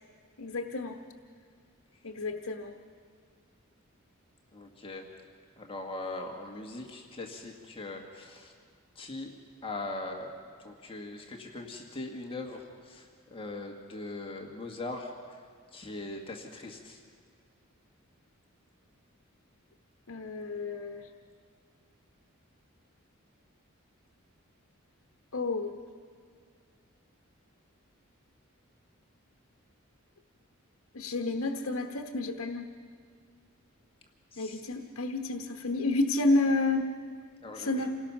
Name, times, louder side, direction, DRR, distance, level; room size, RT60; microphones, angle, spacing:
voice 1, 0.4-1.0 2.0-2.7 20.1-21.1 25.3-25.8 30.9-32.7 34.4-37.0 37.6-37.9, left 2 dB, 80° left, 4 dB, 1.0 m, -30 dB
voice 2, 4.5-5.1 5.6-8.5 9.0-9.3 9.6-10.3 10.6-15.4 15.7-17.0 34.3-34.6 37.4-37.9, left 2 dB, 25° left, 1 dB, 1.7 m, -40 dB
27.5 x 18.5 x 5.9 m, 2.1 s
head